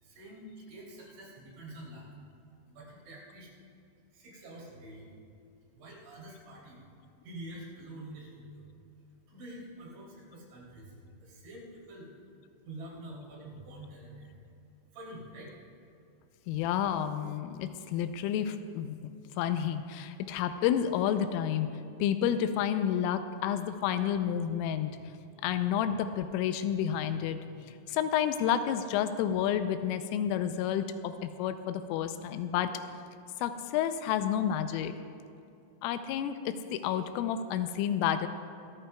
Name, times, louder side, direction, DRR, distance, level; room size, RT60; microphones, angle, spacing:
voice 1, 0.0-2.0 2.7-3.5 4.1-5.1 5.7-6.9 7.2-8.6 9.3-12.1 12.6-14.4 14.9-15.6, right 1 dB, 65° right, -5 dB, 5.3 m, -47 dB
voice 2, 16.5-19.0 19.4-21.7 22.0-24.9 25.4-32.7 33.4-34.9 35.8-38.3, left 9 dB, 85° left, 9 dB, 3.1 m, -30 dB
25.5 x 13.5 x 2.3 m, 2.5 s
omnidirectional pair, 5.8 m